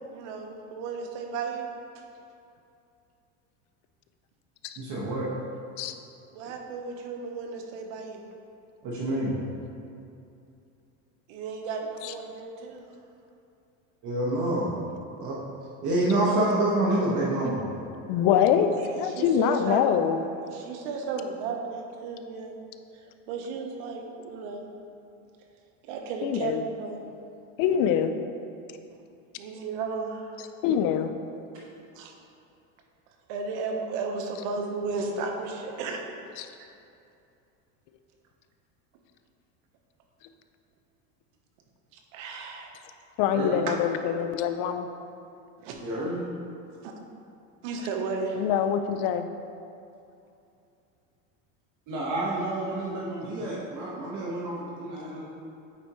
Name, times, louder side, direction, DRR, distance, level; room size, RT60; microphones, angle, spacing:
voice 1, 0.1-1.7 1.9-2.0 6.3-8.2 11.3-12.9 18.7-19.8 20.4-22.6 23.3-24.7 25.8-27.0 29.4-30.4 31.9-32.1 33.3-36.0 36.6-36.7 42.1-42.8 43.7-43.8 45.6-45.8 46.8-46.9 47.6-48.4, right 4 dB, 70° right, 2 dB, 1.0 m, -34 dB
voice 2, 4.8-5.3 8.8-9.3 14.0-14.7 15.2-15.4 15.8-17.7 43.3-43.6 45.7-46.2 51.9-55.2, right 1 dB, 50° right, -5 dB, 1.4 m, -28 dB
voice 3, 18.1-20.2 26.2-26.6 27.6-28.1 30.6-31.1 36.4-36.5 43.2-44.9 48.4-49.3, left 8 dB, 55° left, 9 dB, 0.5 m, -24 dB
8.8 x 4.2 x 3.0 m, 2.6 s
supercardioid pair, 120°, 39 cm